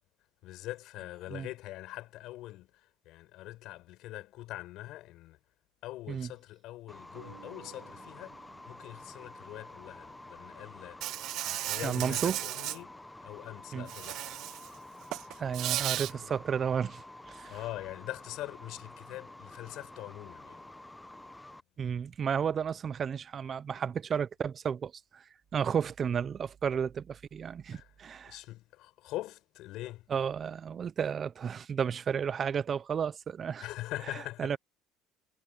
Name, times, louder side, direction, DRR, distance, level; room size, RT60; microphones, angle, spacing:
voice 1, 0.4-5.4 5.8-11.1 11.4-14.4 15.9-16.3 17.5-20.6 27.7-27.9 28.2-30.1 33.6-34.5, left 16 dB, 70° left, 5.4 m, -43 dB
sound 1, 6.9-21.6, left 1 dB, 10° left, 1.2 m, -49 dB
sound 2, 7.1-10.3, right 25 dB, 90° right, 3.7 m, -58 dB
Insect, 11.0-12.8 13.9-14.7 15.0-16.1, right 14 dB, 70° right, 1.0 m, -35 dB
voice 2, 11.8-12.4 13.7-13.9 15.4-17.6 21.8-25.2 25.5-28.4 30.1-33.6 34.4-34.6, right 7 dB, 45° right, 0.8 m, -32 dB
supercardioid pair, 80°, 0 cm